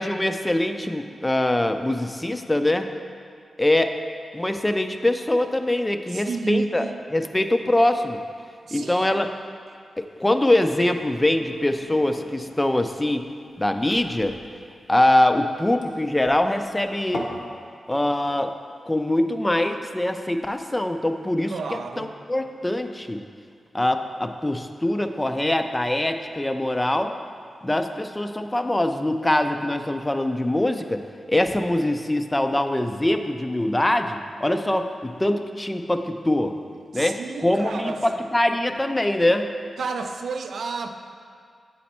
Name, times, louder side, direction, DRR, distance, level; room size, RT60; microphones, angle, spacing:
voice 1, 0.0-2.9 3.6-3.9 4.3-6.9 7.1-8.2 8.7-9.3 10.0-13.2 13.6-14.4 14.9-17.3 17.9-18.5 18.9-21.5 22.0-23.2 23.7-27.1 27.6-31.0 31.3-36.5 36.9-39.5, left 1 dB, 15° left, 7 dB, 0.4 m, -23 dB
voice 2, 6.1-7.0 8.6-9.1 21.5-22.1 36.9-38.2 39.8-40.9, right 4 dB, 80° right, 6 dB, 0.4 m, -31 dB
sound 1, 11.0-17.5, left 1 dB, 75° left, 0.9 m, -41 dB
8.3 x 4.2 x 4.3 m, 2.2 s
cardioid pair, 80°, 0 cm